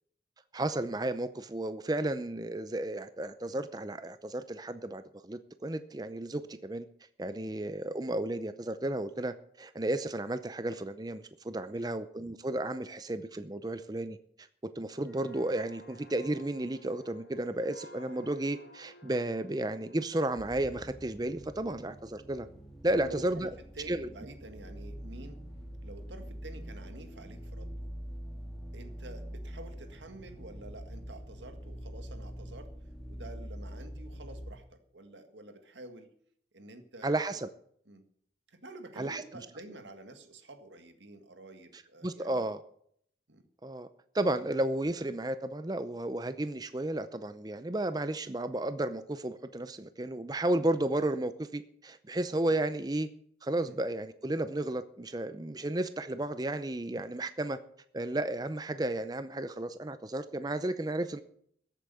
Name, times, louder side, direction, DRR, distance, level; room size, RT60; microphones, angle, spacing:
voice 1, 0.5-6.9 7.2-14.2 14.6-22.5 22.8-23.5 23.9-24.1 37.0-37.5 39.0-39.2 41.7-42.6 43.6-43.9 44.1-53.1 53.4-57.6 57.9-61.2, right 1 dB, 20° right, 12 dB, 0.6 m, -33 dB
sound 1, 14.9-22.4 22.8-23.0, left 2 dB, 85° left, 3.5 m, -57 dB
sound 2, 20.4-34.5, equal, 5° left, 2.6 m, -44 dB
voice 2, 22.9-25.4 25.8-27.9 28.7-32.7 33.1-36.1 36.5-37.4 37.9-38.0 38.5-42.4 43.3-43.4 53.7-53.8, right 2 dB, 85° right, 7 dB, 1.8 m, -49 dB
14.0 x 8.4 x 6.8 m, 0.65 s
head